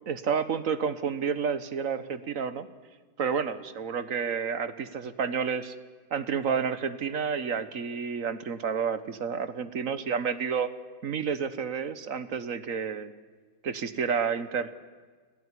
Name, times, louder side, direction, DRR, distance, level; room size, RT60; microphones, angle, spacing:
voice 1, 0.1-2.7 3.2-5.7 6.1-10.7 11.0-13.1 13.6-14.7, right 6 dB, 50° right, 13 dB, 1.5 m, -30 dB
30.0 x 17.0 x 10.0 m, 1.5 s
omnidirectional pair, 2.0 m